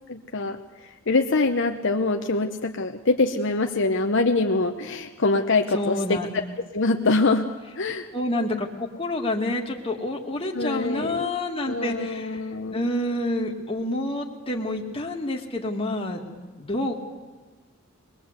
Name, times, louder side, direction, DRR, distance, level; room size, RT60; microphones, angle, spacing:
voice 1, 0.1-6.2 6.7-7.5 7.8-8.1 10.5-11.3 11.7-12.8, left 3 dB, 60° left, 4 dB, 0.9 m, -24 dB
voice 2, 5.7-6.3 8.1-12.4 12.7-16.2 16.6-16.9, left 1 dB, 25° left, 1 dB, 2.2 m, -28 dB
22.0 x 20.5 x 8.1 m, 1.3 s
head